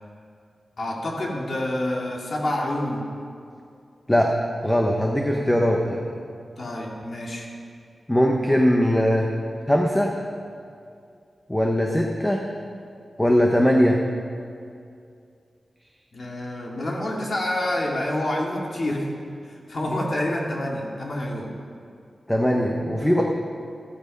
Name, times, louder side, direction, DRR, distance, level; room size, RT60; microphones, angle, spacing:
voice 1, 0.8-3.1 6.6-7.5 16.1-19.1 19.5-21.5, left 1 dB, 50° left, -1 dB, 2.4 m, -27 dB
voice 2, 4.6-6.0 8.1-9.3 9.7-10.1 11.5-12.4 13.2-14.0 22.3-23.2, equal, 10° left, 0 dB, 1.2 m, -20 dB
14.5 x 13.5 x 5.4 m, 2.4 s
wide cardioid pair, 120°, 0 cm